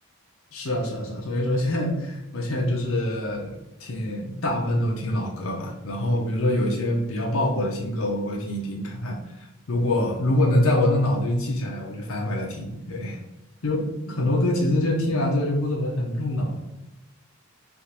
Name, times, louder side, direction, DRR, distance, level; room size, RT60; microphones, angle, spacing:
voice 1, 0.5-3.5 3.8-9.2 9.7-13.2 13.6-16.7, left 1 dB, 70° left, -1 dB, 0.7 m, -25 dB
3.4 x 2.5 x 2.9 m, 0.95 s
head